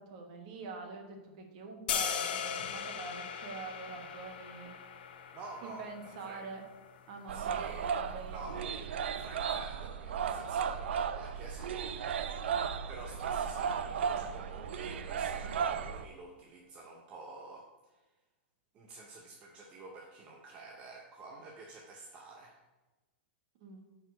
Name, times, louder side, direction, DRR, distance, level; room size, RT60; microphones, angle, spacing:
voice 1, 0.1-4.7 5.6-6.6 7.1-7.6 7.9-8.4 23.6-23.8, right 4 dB, 40° right, 3 dB, 1.2 m, -45 dB
sound 1, 1.9-8.0, left 7 dB, 60° left, 0.7 m, -39 dB
voice 2, 5.3-6.5 7.3-7.9 8.3-12.0 12.9-17.7 18.7-22.6, right 3 dB, 20° right, 0 dB, 0.6 m, -49 dB
sound 2, 7.3-16.0, right 7 dB, 75° right, 0.5 m, -35 dB
8.4 x 4.6 x 5.1 m, 1.2 s
supercardioid pair, 180°, 6 cm